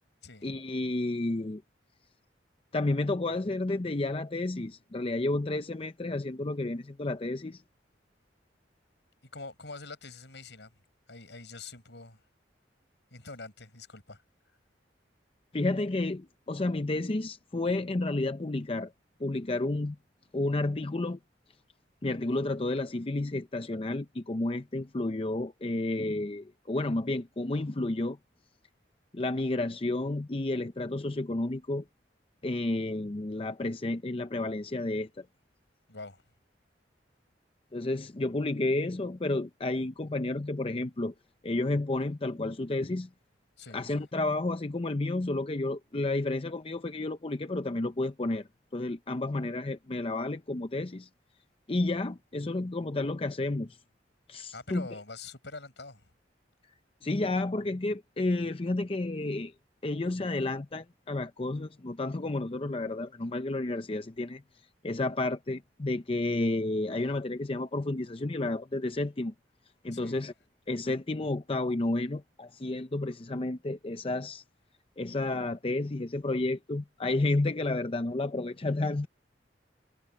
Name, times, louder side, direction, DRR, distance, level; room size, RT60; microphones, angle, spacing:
voice 1, 0.4-1.6 2.7-7.6 15.5-18.9 19.2-20.0 20.3-21.2 22.0-28.2 29.1-31.8 32.4-35.3 37.7-41.1 41.4-43.1 43.7-51.1 51.7-53.8 54.3-54.9 57.0-59.5 59.8-64.4 64.8-69.3 69.8-70.3 70.7-74.4 75.0-79.1, left 2 dB, 30° left, 0.6 m, -31 dB
voice 2, 9.3-10.7 11.1-12.2 13.1-14.2 35.9-36.2 43.6-43.9 54.5-56.1 69.9-70.2, left 3 dB, 75° left, 5.2 m, -45 dB
head